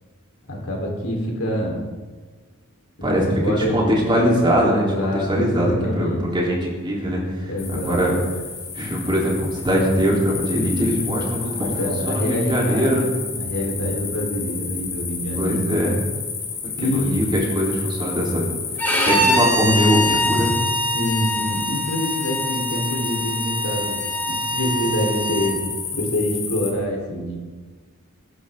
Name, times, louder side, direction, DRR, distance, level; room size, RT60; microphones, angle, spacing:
voice 1, 0.5-1.9 3.0-3.1 3.4-4.0 4.6-6.3 7.5-8.0 11.5-15.6 16.7-17.3 20.9-25.6 25.9-27.4, left 1 dB, 75° left, -1 dB, 4.1 m, -26 dB
voice 2, 3.6-8.1 8.7-13.1 15.3-16.0 16.8-20.6, equal, 20° right, -3 dB, 3.6 m, -22 dB
sound 1, 7.6-26.7, left 6 dB, 50° left, 3.5 m, -31 dB
Bowed string instrument, 18.8-25.5, equal, 10° left, 3.7 m, -24 dB
22.5 x 11.5 x 3.8 m, 1.4 s
head